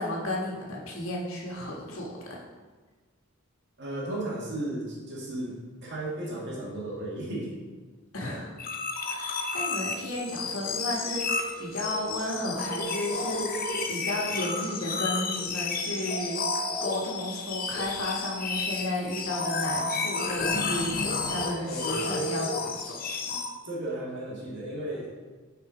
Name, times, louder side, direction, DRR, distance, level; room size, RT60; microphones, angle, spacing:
voice 1, 0.0-2.4 8.1-8.6 9.1-16.4 16.8-23.4, left 1 dB, 70° left, -3 dB, 1.7 m, -33 dB
voice 2, 3.8-7.5 21.6-22.2 23.6-25.1, right 1 dB, 55° right, -3 dB, 1.9 m, -35 dB
sound 1, 8.6-23.5, left 3 dB, 45° left, 0.7 m, -31 dB
sound 2, 9.9-17.5, right 2 dB, 85° right, 1.5 m, -45 dB
6.8 x 4.5 x 5.0 m, 1.3 s
head